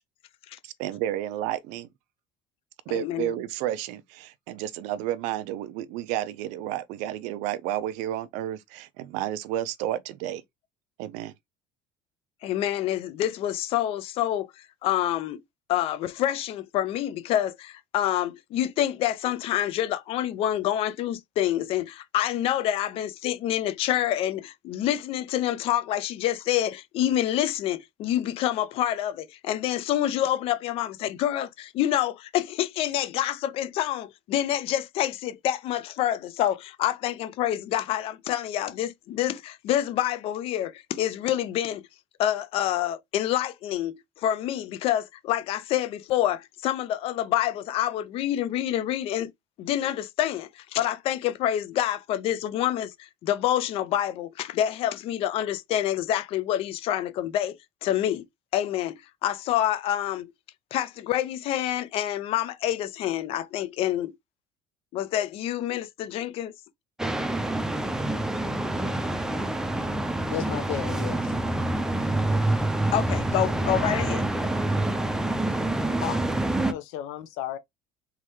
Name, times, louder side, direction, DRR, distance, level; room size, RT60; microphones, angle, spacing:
voice 1, 0.6-1.9 2.9-10.4 11.0-11.3, right 12 dB, 75° right, 0.6 m, -31 dB
voice 2, 2.9-3.3 12.4-14.5 14.8-15.4 15.7-41.9 42.2-49.3 49.6-58.2 58.5-60.3 60.7-64.1 64.9-66.5 72.9-74.3, left 12 dB, 50° left, 0.6 m, -27 dB
sound 1, 67.0-76.7, right 1 dB, 5° right, 0.6 m, -27 dB
voice 3, 70.3-71.3 76.0-76.2 76.7-77.6, left 12 dB, 75° left, 1.0 m, -34 dB
4.1 x 3.7 x 3.2 m
cardioid pair, 160°, 12 cm